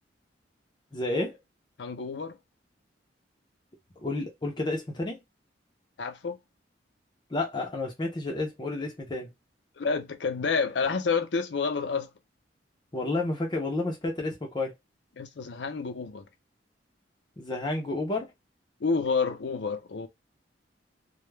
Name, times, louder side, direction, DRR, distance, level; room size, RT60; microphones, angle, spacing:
voice 1, 0.9-1.4 4.0-5.2 7.3-9.3 12.9-14.7 17.4-18.3, left 2 dB, 25° left, 0.5 m, -30 dB
voice 2, 1.8-2.4 6.0-6.4 9.8-12.1 15.2-16.2 18.8-20.1, left 5 dB, 70° left, 0.5 m, -29 dB
2.2 x 2.0 x 3.1 m
head